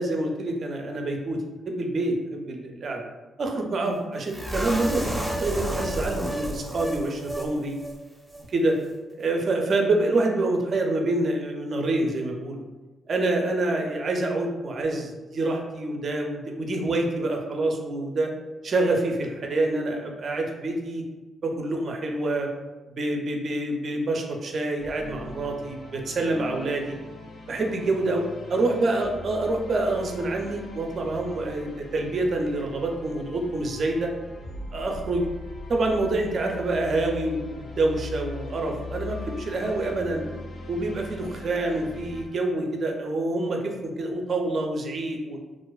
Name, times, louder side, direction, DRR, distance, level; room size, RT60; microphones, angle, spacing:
voice 1, 0.0-1.4 1.7-3.0 3.4-7.7 8.4-8.8 9.2-12.6 13.1-18.3 18.6-21.0 21.4-22.5 22.9-27.0 27.5-28.2 28.5-34.1 34.7-35.3 35.7-40.2 40.7-45.4, right 2 dB, 60° right, 2 dB, 0.4 m, -27 dB
sound 1, 4.3-7.5 7.8-7.9 8.3-8.4, right 1 dB, 5° right, 0.6 m, -31 dB
sound 2, 24.8-42.3, left 2 dB, 75° left, 0.4 m, -40 dB
2.4 x 2.2 x 2.3 m, 1.2 s
supercardioid pair, 60°, 0 cm